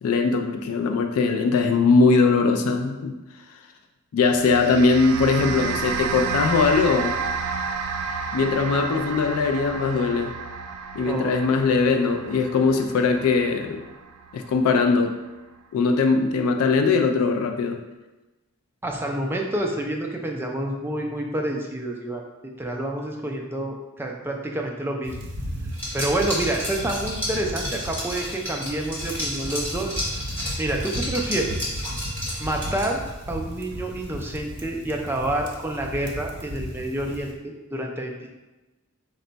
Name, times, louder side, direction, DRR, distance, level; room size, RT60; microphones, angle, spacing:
voice 1, 0.0-3.2 4.1-7.2 8.3-10.3 10.9-13.8 14.3-15.1 15.7-17.8, left 4 dB, 80° left, 5 dB, 0.3 m, -21 dB
sound 1, 4.2-14.8, right 5 dB, 85° right, 0.3 m, -31 dB
voice 2, 18.8-22.2 22.6-25.2 25.9-30.0 30.6-31.7 32.4-33.0 33.3-38.3, right 1 dB, 10° right, 1 dB, 0.3 m, -28 dB
sound 2, 25.0-37.3, equal, 50° right, 0.7 m, -35 dB
Liquid, 25.7-33.1, equal, 10° left, 1.1 m, -32 dB
4.2 x 2.2 x 3.9 m, 1.1 s
head